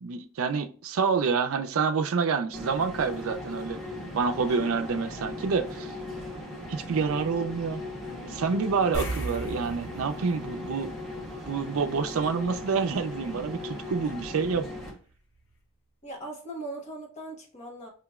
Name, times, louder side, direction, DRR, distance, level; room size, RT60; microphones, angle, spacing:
voice 1, 0.0-3.8 4.1-5.9 6.7-7.8 8.2-10.9 11.5-14.7, right 5 dB, 75° right, 0.4 m, -28 dB
sound 1, 2.5-14.9, left 2 dB, ahead, 1.0 m, -38 dB
voice 2, 4.5-5.2 16.0-17.9, right 1 dB, 35° left, 1.2 m, -40 dB
sound 2, 8.9-11.7 12.0-12.2 15.1-15.2 15.5-15.6, right 2 dB, 65° left, 1.3 m, -36 dB
5.0 x 3.0 x 2.3 m
head